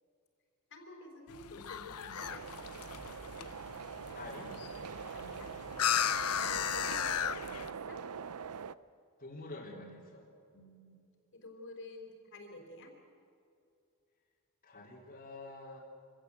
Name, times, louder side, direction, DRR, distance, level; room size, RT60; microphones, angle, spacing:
voice 1, 0.7-2.5 5.1-5.6 6.5-8.1 10.5-11.0 11.3-12.9, left 2 dB, 60° left, 2 dB, 3.9 m, -50 dB
sound 1, 1.3-7.7, left 9 dB, 85° left, 0.8 m, -36 dB
sound 2, 2.2-8.7, right 6 dB, 85° right, 0.6 m, -43 dB
voice 2, 4.1-4.5 6.3-6.5 9.2-10.2 14.6-15.8, left 2 dB, 40° left, -4 dB, 3.4 m, -47 dB
25.0 x 17.0 x 8.0 m, 2.5 s
head